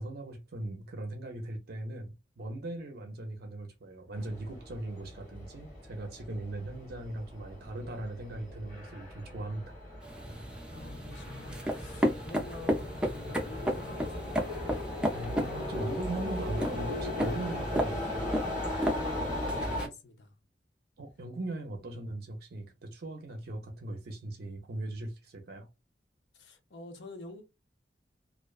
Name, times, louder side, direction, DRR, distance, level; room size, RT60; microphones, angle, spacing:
voice 1, 0.0-9.7 15.1-18.3 21.0-25.7, right 2 dB, 60° right, 0.5 m, -39 dB
sound 1, 4.1-19.9, left 1 dB, 50° left, 1.0 m, -38 dB
sound 2, 10.0-19.9, equal, 5° right, 0.5 m, -34 dB
voice 2, 10.7-14.3 18.9-20.3 26.3-27.4, left 3 dB, 70° left, 0.7 m, -48 dB
2.4 x 2.2 x 2.3 m
head